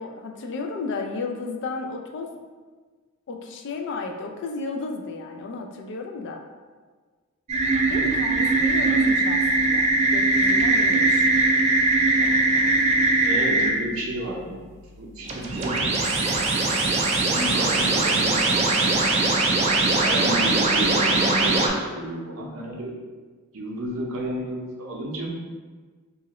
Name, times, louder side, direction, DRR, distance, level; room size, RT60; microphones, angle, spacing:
voice 1, 0.0-2.3 3.3-6.4 7.9-11.3 15.1-15.2, left 3 dB, 60° left, 3 dB, 0.3 m, -33 dB
sound 1, 7.5-13.7 15.2-21.7, right 2 dB, 30° right, 0.3 m, -21 dB
voice 2, 13.1-14.7 15.0-16.2 17.2-19.4 20.0-22.9 23.5-25.3, right 1 dB, 75° right, -1 dB, 0.6 m, -32 dB
2.9 x 2.4 x 2.9 m, 1.4 s
head